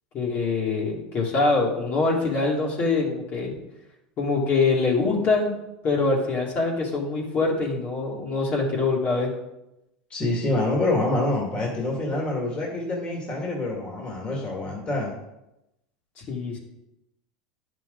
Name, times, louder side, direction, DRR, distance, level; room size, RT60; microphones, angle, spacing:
voice 1, 0.1-3.5 4.2-5.5 5.8-9.3 16.3-16.6, left 3 dB, 45° left, -3 dB, 2.6 m, -24 dB
voice 2, 10.1-15.1, left 2 dB, 30° left, -2 dB, 2.3 m, -26 dB
10.0 x 6.1 x 4.0 m, 0.89 s
supercardioid pair, 110°, 4 cm